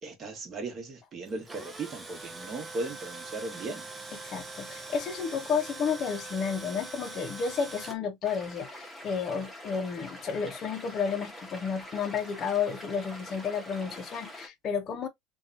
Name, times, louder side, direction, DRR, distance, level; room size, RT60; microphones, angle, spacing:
voice 1, 0.0-3.9, right 3 dB, 35° right, 1.1 m, -37 dB
Tools, 1.3-8.0, right 2 dB, 15° right, 0.6 m, -42 dB
voice 2, 4.2-15.1, left 6 dB, 40° left, 0.5 m, -32 dB
sound 1, 8.2-14.5, left 1 dB, 10° left, 0.9 m, -45 dB
2.7 x 2.3 x 2.5 m
supercardioid pair, 125°, 0 cm